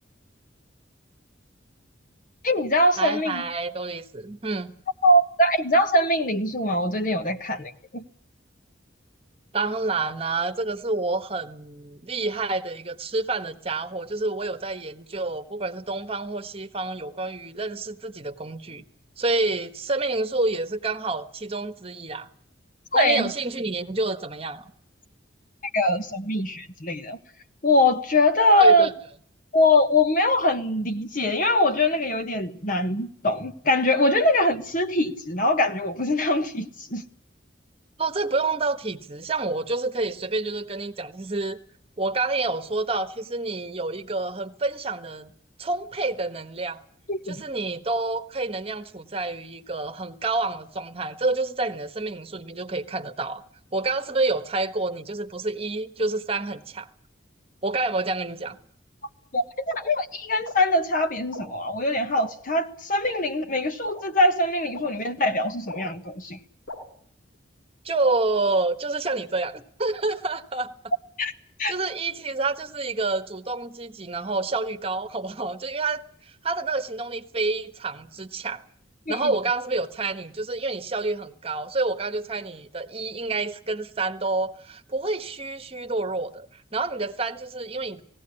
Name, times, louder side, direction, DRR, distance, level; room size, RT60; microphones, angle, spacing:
voice 1, 2.4-3.4 5.0-8.0 22.9-23.3 25.7-27.2 27.6-28.9 29.5-37.0 47.1-47.4 59.3-66.4 71.2-71.3 71.6-71.7 79.1-79.2, left 1 dB, 45° left, 1.4 m, -22 dB
voice 2, 3.0-4.7 9.5-18.8 19.2-22.3 22.9-24.7 28.6-28.9 38.0-41.6 42.0-45.3 45.6-46.8 47.3-53.4 53.7-56.9 57.6-58.6 67.8-70.7 71.7-78.6 79.1-88.0, right 3 dB, 30° right, 1.2 m, -28 dB
sound 1, 59.7-59.8 60.4-60.5 61.3-61.4 62.1-62.2 63.0-63.1 63.8-63.9 64.7-64.8 65.7-65.8 66.7-66.8, left 2 dB, 85° left, 5.1 m, -36 dB
19.0 x 16.0 x 9.9 m
head